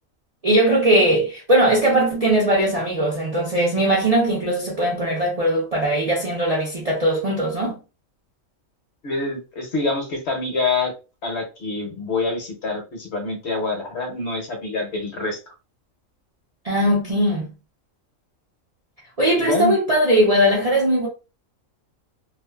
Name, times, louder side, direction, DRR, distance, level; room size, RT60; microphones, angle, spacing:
voice 1, 0.4-7.8 16.6-17.5 19.2-21.1, right 1 dB, 50° right, 0.4 m, -19 dB
voice 2, 9.0-10.9 11.2-15.4 19.4-19.7, left 3 dB, 60° left, 0.9 m, -26 dB
2.4 x 2.3 x 2.2 m
omnidirectional pair, 1.4 m